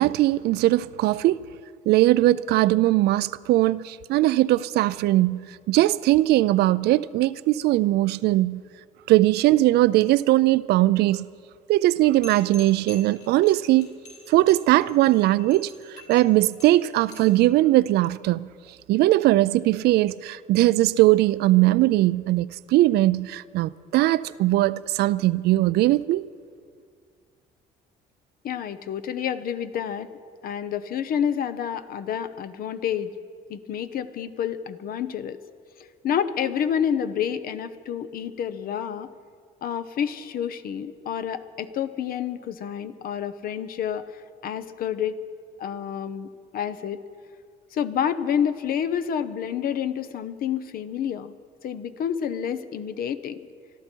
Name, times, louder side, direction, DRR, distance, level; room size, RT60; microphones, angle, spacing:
voice 1, 0.0-1.4 1.9-8.6 9.1-11.3 11.7-13.9 14.3-15.7 16.1-18.5 18.9-26.3, right 16 dB, 75° right, 0.4 m, -20 dB
sound 1, 12.2-17.4, left 3 dB, 45° left, 4.7 m, -45 dB
voice 2, 28.4-30.1 30.4-33.1 33.5-35.4 36.0-39.1 39.6-45.1 45.6-47.0 47.7-51.3 51.6-53.4, left 8 dB, 60° left, 0.9 m, -29 dB
24.5 x 13.0 x 4.5 m
cardioid pair, 110°, 17 cm